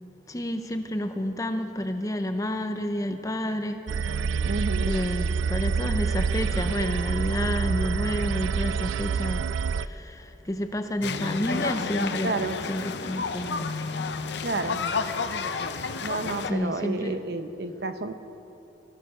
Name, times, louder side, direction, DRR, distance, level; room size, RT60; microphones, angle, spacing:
voice 1, 0.3-4.5 4.8-12.4 12.7-13.8 14.2-14.5 16.4-17.2, left 1 dB, 15° left, 7 dB, 0.7 m, -30 dB
sound 1, 3.9-9.9, right 5 dB, 80° right, 0.3 m, -27 dB
voice 2, 4.4-4.9 12.2-12.6 14.4-14.8 16.0-18.1, right 2 dB, 55° right, 9 dB, 0.8 m, -30 dB
sound 2, 11.0-16.5, left 4 dB, 60° left, 0.6 m, -30 dB
20.5 x 13.5 x 5.0 m, 3.0 s
head